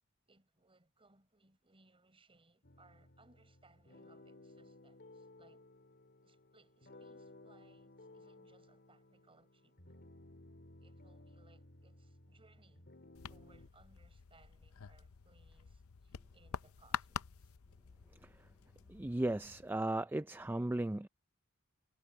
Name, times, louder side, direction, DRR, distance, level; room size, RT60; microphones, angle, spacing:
voice 1, 0.3-5.7 6.2-10.0 10.8-12.9 13.3-17.5, right 3 dB, 25° right, 4.8 m, -68 dB
sound 1, 2.6-13.7, left 2 dB, 50° left, 3.2 m, -58 dB
sound 2, 13.1-19.7, left 7 dB, 75° left, 0.6 m, -47 dB
voice 2, 18.9-21.1, right 1 dB, 10° right, 0.4 m, -36 dB
head